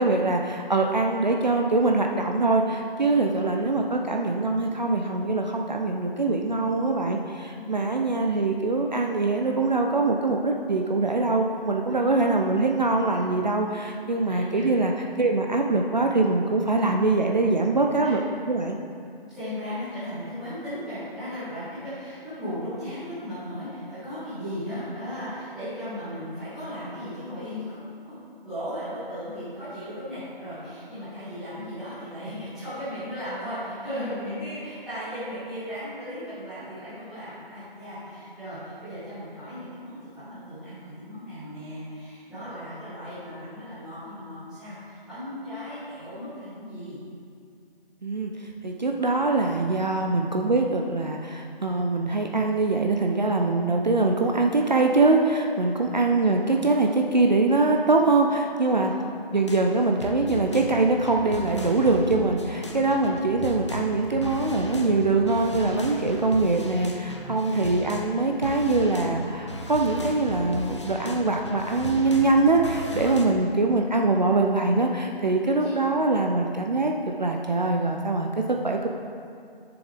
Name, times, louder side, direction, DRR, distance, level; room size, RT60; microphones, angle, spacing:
voice 1, 0.0-14.9 15.2-18.2 18.5-18.8 48.0-78.9, right 3 dB, 45° right, 2 dB, 0.6 m, -23 dB
voice 2, 3.1-3.6 6.4-6.9 7.4-7.8 11.9-12.3 13.1-13.2 13.7-13.8 14.2-14.9 18.0-18.2 19.3-28.2 28.4-47.0 55.7-56.2 56.7-56.9 58.7-59.1 67.3-67.7 75.6-76.1, equal, ahead, -17 dB, 1.1 m, -37 dB
sound 1, 59.4-68.2 68.4-73.3, equal, 30° left, 0.6 m, -36 dB
11.0 x 7.0 x 3.4 m, 2.4 s
figure-of-eight pair, 160°, 30 cm